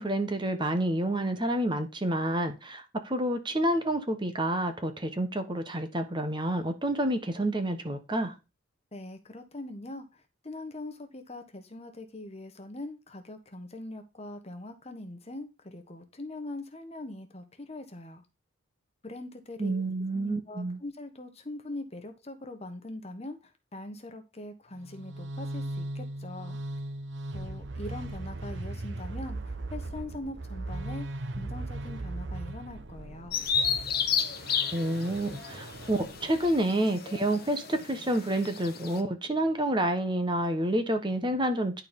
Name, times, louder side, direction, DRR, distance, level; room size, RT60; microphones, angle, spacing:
voice 1, 0.0-8.3 19.6-20.8 34.7-41.8, right 1 dB, 20° right, 1.1 m, -29 dB
voice 2, 8.9-18.2 19.0-19.8 20.1-26.6 27.3-31.1 31.3-33.4, left 2 dB, 30° left, 1.4 m, -42 dB
sound 1, 24.8-36.6, right 2 dB, 60° right, 0.9 m, -38 dB
Bird vocalization bird call bird song, 33.3-39.0, left 7 dB, 45° left, 1.3 m, -32 dB
10.5 x 4.6 x 5.3 m
head